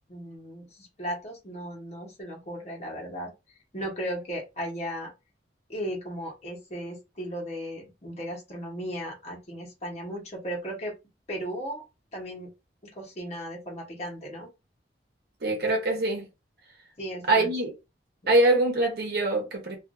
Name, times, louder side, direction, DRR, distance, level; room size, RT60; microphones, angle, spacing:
voice 1, 0.1-3.3 3.7-5.1 5.7-10.9 11.3-11.8 12.1-12.5 12.8-14.5 17.0-17.5 18.2-18.3, equal, 40° left, 1.0 m, -36 dB
voice 2, 15.4-16.3 17.3-17.7 18.3-19.8, right 2 dB, 60° right, 0.9 m, -23 dB
2.5 x 2.4 x 2.5 m
head